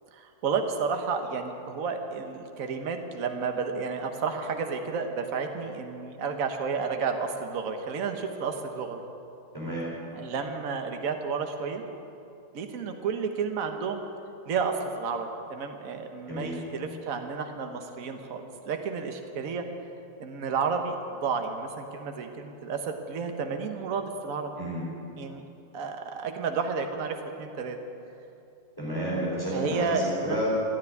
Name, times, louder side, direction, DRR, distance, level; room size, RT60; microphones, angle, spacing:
voice 1, 0.1-9.0 10.1-11.8 12.5-14.0 14.5-19.6 20.2-20.9 21.2-24.5 25.2-25.4 25.7-27.8 29.5-30.4, right 5 dB, 45° right, 5 dB, 1.4 m, -31 dB
voice 2, 9.5-9.9 16.3-16.6 24.6-24.8 28.8-30.4, equal, 10° left, -7 dB, 4.1 m, -31 dB
14.0 x 9.7 x 9.6 m, 2.7 s
omnidirectional pair, 2.3 m